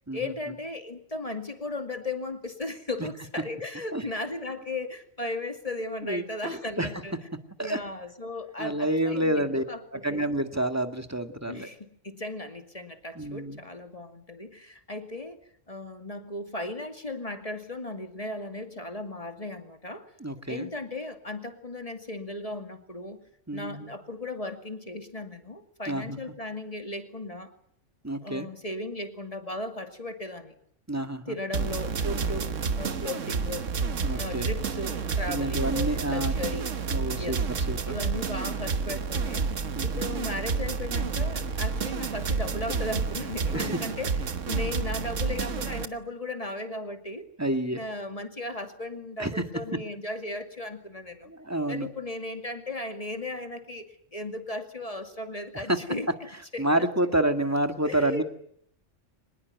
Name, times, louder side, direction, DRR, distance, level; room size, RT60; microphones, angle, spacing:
voice 1, 0.1-7.2 7.6-10.3 11.5-11.8 12.0-15.4 15.7-20.1 20.5-23.2 23.5-27.5 28.2-30.5 31.3-33.7 34.2-36.7 37.2-37.4 37.9-39.5 39.8-47.3 47.7-51.3 51.7-56.1 56.5-56.9 57.8-58.2, left 2 dB, 30° left, 7 dB, 2.4 m, -36 dB
voice 2, 6.0-6.9 7.6-7.8 8.6-9.6 10.0-11.7 13.2-13.6 20.2-20.7 23.5-23.9 25.9-26.2 28.0-28.5 30.9-31.4 34.0-34.5 35.3-36.3 36.9-37.4 37.7-37.9 39.7-39.9 40.1-40.2 43.5-43.8 47.4-47.8 49.2-49.4 51.3-51.9 55.7-55.8 56.6-58.2, right 1 dB, 15° right, 7 dB, 1.9 m, -28 dB
sound 1, 31.5-45.9, right 5 dB, 80° right, 1.6 m, -30 dB
24.5 x 21.0 x 9.3 m, 0.66 s
omnidirectional pair, 1.3 m